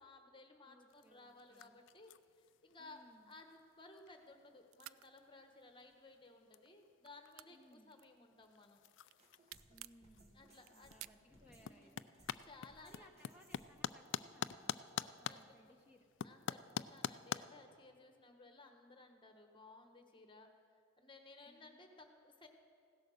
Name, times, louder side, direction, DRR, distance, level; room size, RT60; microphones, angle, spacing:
voice 1, 0.0-2.1 2.4-3.0 3.3-3.5 3.7-8.8 10.3-10.9 11.3-12.0 12.4-13.1 14.9-15.8 16.2-20.5 21.0-22.5, left 3 dB, 20° left, 5 dB, 1.2 m, -59 dB
voice 2, 0.6-1.8 2.8-3.4 7.5-8.0 9.7-12.1 12.8-16.0 21.4-21.8, equal, 5° right, 1 dB, 0.9 m, -65 dB
sound 1, 0.9-17.4, left 8 dB, 55° left, 0.3 m, -49 dB
sound 2, 3.2-4.4 4.7-5.0 5.8-6.3 6.6-8.5 8.9-10.1 10.6-11.7, right 16 dB, 65° right, 0.3 m, -55 dB
sound 3, 9.2-13.9, right 1 dB, 30° right, 1.5 m, -67 dB
16.5 x 12.5 x 6.5 m, 2.4 s
head